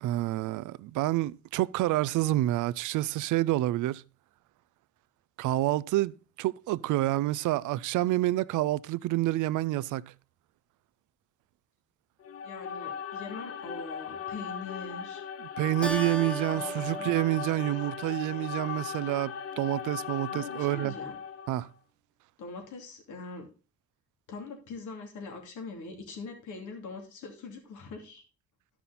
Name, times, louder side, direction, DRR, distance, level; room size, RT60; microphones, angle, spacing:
voice 1, 0.0-4.0 5.4-10.0 15.4-20.9 21.5-21.7, right 16 dB, 80° right, 0.5 m, -28 dB
sound 1, 12.2-21.7, left 7 dB, 50° left, 0.7 m, -38 dB
voice 2, 12.4-15.2 16.5-17.1 20.3-21.1 22.4-23.5 24.3-28.2, left 3 dB, 80° left, 2.7 m, -42 dB
Keyboard (musical), 15.8-18.7, right 1 dB, 5° left, 1.1 m, -38 dB
12.5 x 5.9 x 4.1 m
cardioid pair, 90°, 30 cm